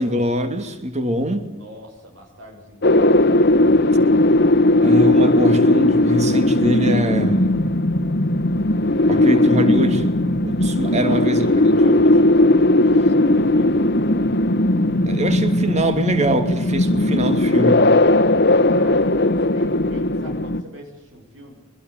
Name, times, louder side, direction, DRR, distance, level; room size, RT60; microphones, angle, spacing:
voice 1, 0.0-1.5 4.8-7.5 9.1-12.2 15.1-17.9, equal, 35° right, 8 dB, 2.8 m, -23 dB
voice 2, 1.5-4.1 10.8-12.3 13.0-14.2 18.7-21.6, equal, 75° right, 1 dB, 6.8 m, -42 dB
sound 1, 2.8-20.6, left 1 dB, 60° left, 1.4 m, -17 dB
24.0 x 21.0 x 9.7 m, 0.95 s
head